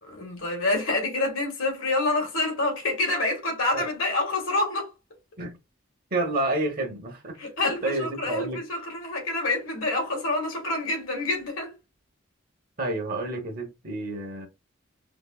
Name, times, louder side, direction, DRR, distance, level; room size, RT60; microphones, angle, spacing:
voice 1, 0.0-4.9 7.4-11.7, left 2 dB, 90° left, 1.8 m, -27 dB
voice 2, 6.1-8.6 12.8-14.5, right 2 dB, 45° right, 1.0 m, -30 dB
3.9 x 2.6 x 2.3 m
head